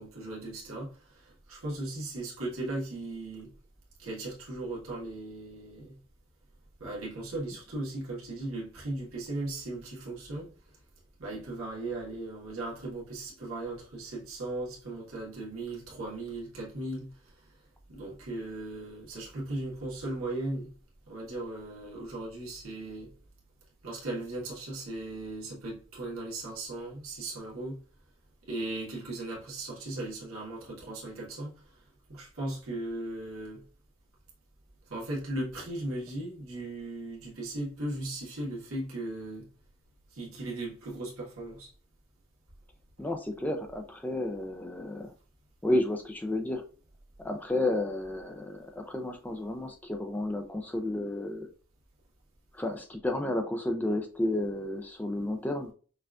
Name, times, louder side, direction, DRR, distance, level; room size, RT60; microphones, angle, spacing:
voice 1, 0.0-3.5 4.0-6.0 6.8-10.5 11.2-17.3 17.9-20.7 21.1-23.1 23.8-27.8 28.5-31.6 32.1-33.6 34.9-39.5 40.1-41.7, right 2 dB, 85° right, 1.5 m, -37 dB
voice 2, 43.0-45.1 45.6-46.6 47.2-51.5 52.5-55.7, left 1 dB, 10° left, 0.4 m, -31 dB
5.6 x 2.4 x 2.3 m
head